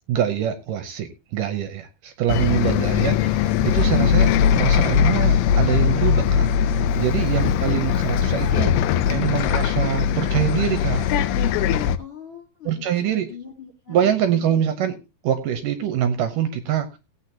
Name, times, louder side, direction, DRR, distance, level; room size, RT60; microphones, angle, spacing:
voice 1, 0.0-6.5 7.0-8.8 9.1-11.1 12.7-13.3 13.9-15.0 15.2-16.9, right 10 dB, 70° right, 10 dB, 2.2 m, -24 dB
Bus, 2.3-12.0, left 8 dB, 90° left, 2.7 m, -20 dB
voice 2, 7.5-7.8 12.0-14.6, left 7 dB, 45° left, 1 dB, 1.9 m, -42 dB
18.5 x 8.5 x 2.9 m, 0.27 s
omnidirectional pair, 4.4 m